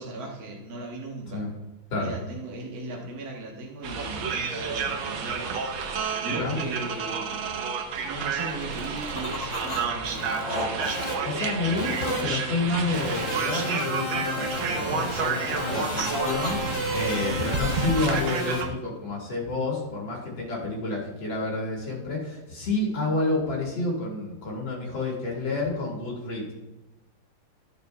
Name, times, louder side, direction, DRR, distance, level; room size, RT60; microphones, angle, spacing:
voice 1, 0.0-1.5 2.0-5.7 6.2-7.4 8.0-10.9, right 2 dB, 50° right, 0 dB, 1.4 m, -38 dB
sound 1, 3.8-18.7, right 5 dB, 75° right, 1.5 m, -30 dB
sound 2, 8.6-9.8 10.1-12.6 15.2-17.0, left 1 dB, 45° left, 3.5 m, -36 dB
sound 3, 8.6-10.4 10.8-11.1 11.8-12.2 12.9-18.6, equal, 25° left, 0.7 m, -33 dB
voice 2, 11.2-26.5, left 3 dB, 65° left, -4 dB, 2.6 m, -29 dB
13.5 x 6.6 x 2.2 m, 1.0 s
omnidirectional pair, 2.3 m